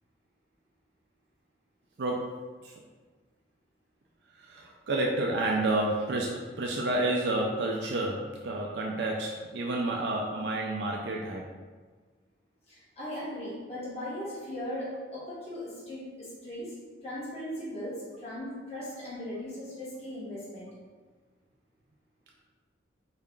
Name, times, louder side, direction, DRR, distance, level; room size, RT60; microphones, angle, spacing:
voice 1, 2.0-2.4 2.6-2.7 4.5-11.4, right 2 dB, 60° right, -1 dB, 0.4 m, -30 dB
voice 2, 12.7-16.7 17.0-20.7, left 1 dB, 35° left, -10 dB, 1.3 m, -38 dB
4.2 x 2.4 x 3.6 m, 1.4 s
head